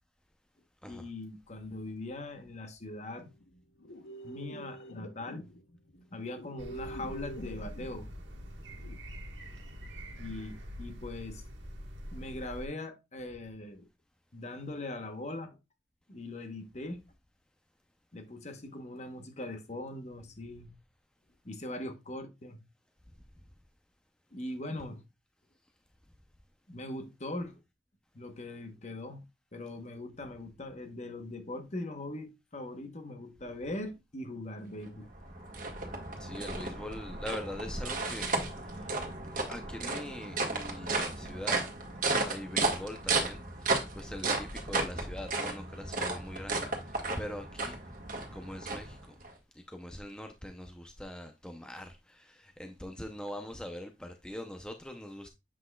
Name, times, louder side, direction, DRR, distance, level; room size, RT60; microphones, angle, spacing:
voice 1, 0.9-3.3 4.2-5.5 6.1-8.1 10.2-11.4 12.1-13.9 14.3-15.6 16.1-17.0 18.1-20.7 21.4-22.6 24.3-25.0 26.7-27.6 28.1-29.2 29.5-35.1, left 2 dB, 40° left, 1.0 m, -41 dB
sound 1, 3.2-9.0, right 1 dB, 80° left, 0.8 m, -46 dB
sound 2, 6.6-12.7, equal, 85° right, 1.5 m, -44 dB
sound 3, 34.9-49.3, right 3 dB, 45° right, 1.6 m, -34 dB
voice 2, 36.2-38.9 39.3-41.7 42.2-47.8 48.3-49.2 49.5-55.3, left 1 dB, 5° left, 0.6 m, -42 dB
7.5 x 6.1 x 2.3 m
head